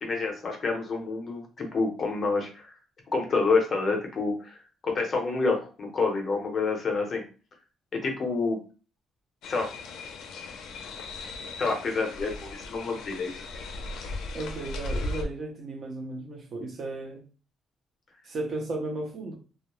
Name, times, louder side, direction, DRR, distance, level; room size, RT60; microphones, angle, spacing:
voice 1, 0.0-2.7 3.1-4.6 4.8-7.2 7.9-8.6 9.5-9.7 11.6-13.4, left 4 dB, 30° left, 2 dB, 0.6 m, -28 dB
sound 1, 9.4-15.2, left 2 dB, 80° left, 0.4 m, -37 dB
voice 2, 14.3-17.2 18.2-19.4, right 2 dB, 40° right, 2 dB, 0.5 m, -35 dB
2.2 x 2.0 x 2.9 m, 0.36 s
cardioid pair, 175°, 0 cm